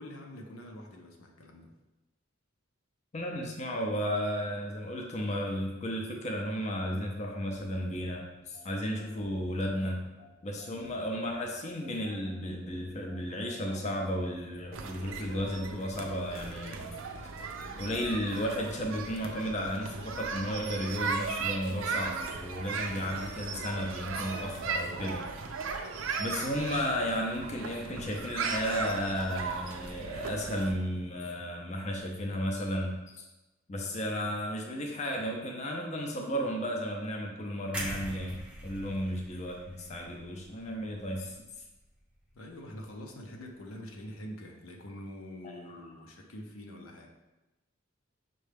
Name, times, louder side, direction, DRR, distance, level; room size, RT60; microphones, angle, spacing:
voice 1, 0.0-1.7 38.9-39.1 42.3-47.1, left 1 dB, 85° left, 1 dB, 0.6 m, -45 dB
voice 2, 3.1-10.0 10.4-17.0 17.7-25.3 26.2-33.3 33.7-41.4 45.7-45.8, equal, 35° left, 1 dB, 0.5 m, -34 dB
sound 1, 7.5-20.7, left 2 dB, 65° left, 1.0 m, -55 dB
sound 2, 14.7-30.7, right 5 dB, 70° right, 0.4 m, -37 dB
sound 3, 37.7-41.8 42.1-42.3, right 1 dB, 5° right, 0.6 m, -42 dB
6.2 x 2.3 x 3.3 m, 1.1 s
head